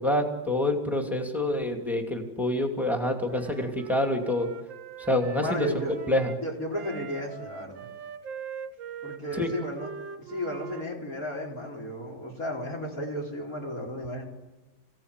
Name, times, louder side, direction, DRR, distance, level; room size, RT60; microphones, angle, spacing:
voice 1, 0.0-4.5 5.0-5.7 6.1-6.3 9.4-9.5, left 1 dB, ahead, 3 dB, 2.6 m, -27 dB
Wind instrument woodwind instrument, 2.8-6.4 6.7-10.9, right 7 dB, 70° right, 1.9 m, -42 dB
voice 2, 5.4-6.2 6.4-7.9 9.0-9.9 10.2-14.2, equal, 45° left, -2 dB, 4.8 m, -34 dB
26.5 x 17.5 x 8.3 m, 1.1 s
omnidirectional pair, 2.2 m